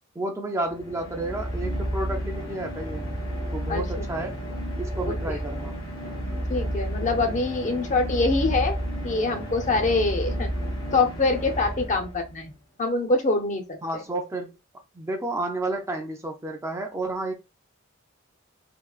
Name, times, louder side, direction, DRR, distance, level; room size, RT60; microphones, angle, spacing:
voice 1, 0.2-3.1 3.5-4.4 4.8-5.7 13.8-14.6 14.9-17.3, right 2 dB, 15° right, 0.4 m, -31 dB
sound 1, 0.6-12.5, equal, 85° left, 1.5 m, -31 dB
voice 2, 3.7-4.1 5.1-5.2 6.5-8.8 9.0-10.5 10.9-12.5 12.8-13.8, left 3 dB, 35° left, 0.5 m, -24 dB
3.6 x 2.3 x 2.3 m
head